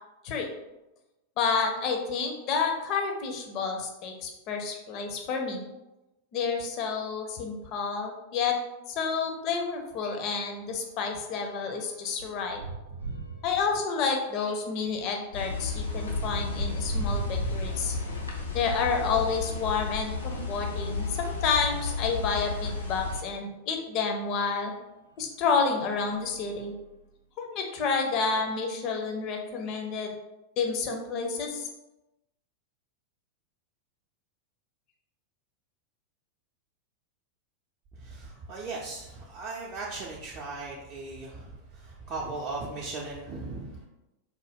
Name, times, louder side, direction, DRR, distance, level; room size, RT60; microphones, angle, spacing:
voice 1, 1.4-5.6 6.3-8.5 8.9-12.6 13.4-17.9 18.5-24.7 25.2-26.7 27.4-30.1 30.6-31.7, left 5 dB, 40° left, 3 dB, 0.6 m, -29 dB
sound 1, 9.0-9.2 9.6-9.7 10.0-19.5 20.2-21.6 22.2-22.3 22.6-22.7 24.4-24.5 25.1-25.4 25.8-27.1, right 4 dB, 85° right, 0.7 m, -41 dB
sound 2, 15.3-23.2, left 4 dB, 80° left, 0.6 m, -33 dB
voice 2, 37.9-43.8, right 3 dB, 35° right, -4 dB, 0.5 m, -38 dB
3.8 x 2.2 x 3.5 m, 0.98 s
figure-of-eight pair, 90°, 0 cm